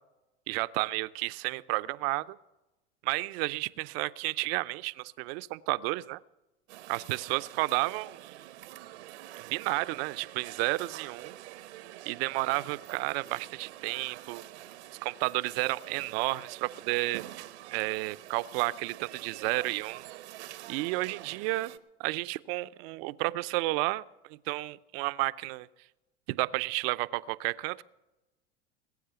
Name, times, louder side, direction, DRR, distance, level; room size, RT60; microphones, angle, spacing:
voice 1, 0.5-2.4 3.0-6.2 6.9-8.3 9.4-11.4 12.1-14.4 15.0-17.2 17.7-20.1 20.7-21.7 22.0-24.0 24.3-25.7 26.3-27.8, right 21 dB, 60° right, 14 dB, 0.6 m, -31 dB
sound 1, 6.7-21.8, right 14 dB, 75° right, 0.9 m, -47 dB
20.5 x 8.5 x 6.9 m, 1.0 s
hypercardioid pair, 100°, 34 cm